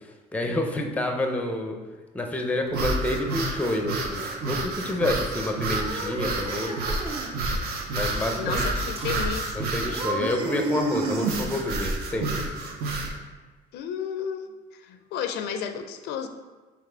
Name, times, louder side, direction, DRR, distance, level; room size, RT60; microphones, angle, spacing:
voice 1, 0.3-1.8 2.1-6.8 7.9-8.7 9.5-12.4, left 1 dB, 10° left, 3 dB, 0.5 m, -28 dB
sound 1, 2.7-13.1, right 2 dB, 65° right, 0.7 m, -29 dB
sound 2, 5.6-7.3 8.0-8.4 9.0-9.4 9.8-11.6, right 1 dB, 35° right, 0.7 m, -36 dB
voice 2, 8.4-9.7 13.7-14.5 14.9-16.3, left 8 dB, 80° left, 8 dB, 0.4 m, -32 dB
4.1 x 2.8 x 4.4 m, 1.3 s
cardioid pair, 110°, 17 cm